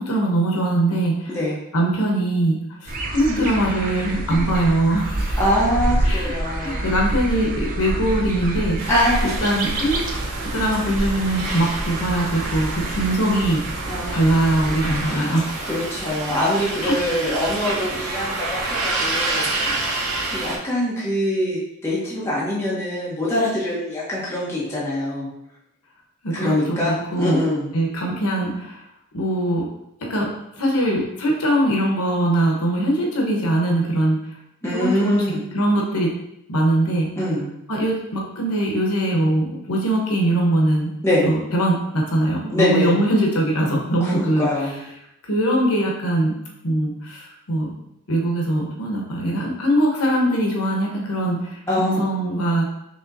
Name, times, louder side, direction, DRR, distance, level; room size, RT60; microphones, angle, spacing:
voice 1, 0.0-1.4 1.7-5.4 6.0-6.3 6.6-8.8 9.2-10.0 10.5-13.6 14.1-15.7 16.8-16.9 17.2-17.4 26.2-27.4 27.7-28.8 29.1-29.6 30.1-30.3 30.6-34.2 34.7-35.2 35.5-36.1 36.5-37.1 37.7-40.9 41.2-44.5 45.2-46.3 46.6-47.7 48.1-52.7, right 1 dB, 75° left, -1 dB, 0.9 m, -21 dB
sound 1, 2.9-15.1, right 1 dB, 40° right, 0.4 m, -27 dB
voice 2, 5.4-6.9 8.9-9.4 12.8-13.0 13.9-14.2 15.0-19.5 19.7-25.3 26.3-27.7 34.6-35.4 37.2-37.5 41.0-41.2 42.5-43.0 44.0-44.8 51.7-52.0, left 1 dB, 10° left, -8 dB, 0.8 m, -24 dB
sound 2, 8.8-20.6, right 2 dB, 75° right, 0.8 m, -28 dB
5.2 x 2.9 x 2.6 m, 0.82 s
head